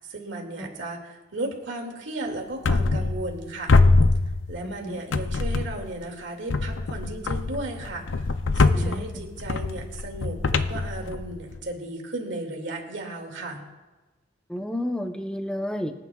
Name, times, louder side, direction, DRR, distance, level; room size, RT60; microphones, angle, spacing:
voice 1, 0.0-3.7 4.5-8.1 8.5-13.6, right 2 dB, 65° right, 1 dB, 2.3 m, -35 dB
sound 1, 2.6-3.4 3.7-4.8 5.1-6.0 6.5-11.6, left 3 dB, 70° left, 0.6 m, -23 dB
voice 2, 4.6-5.0 8.7-9.3 14.5-15.9, left 1 dB, 5° left, 4 dB, 0.8 m, -31 dB
25.0 x 9.8 x 2.4 m, 1.2 s
head